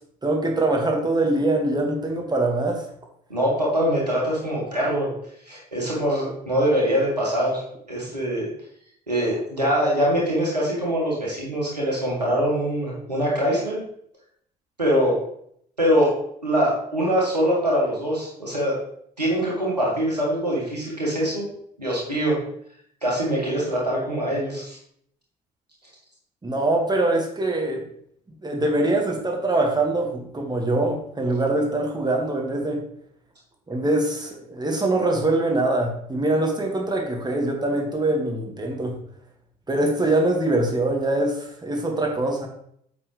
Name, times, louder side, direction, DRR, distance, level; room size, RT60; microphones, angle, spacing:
voice 1, 0.2-2.8 26.4-27.8 28.4-32.8 33.7-39.0 39.7-42.5, right 2 dB, 20° right, 1 dB, 1.9 m, -23 dB
voice 2, 3.3-5.1 5.5-7.6 7.9-8.5 9.1-13.8 14.8-15.1 15.8-16.1 16.4-18.7 19.2-21.5 21.8-22.4 23.0-24.8, equal, 90° right, -4 dB, 1.9 m, -23 dB
7.7 x 6.1 x 3.3 m, 0.68 s
figure-of-eight pair, 50°, 20 cm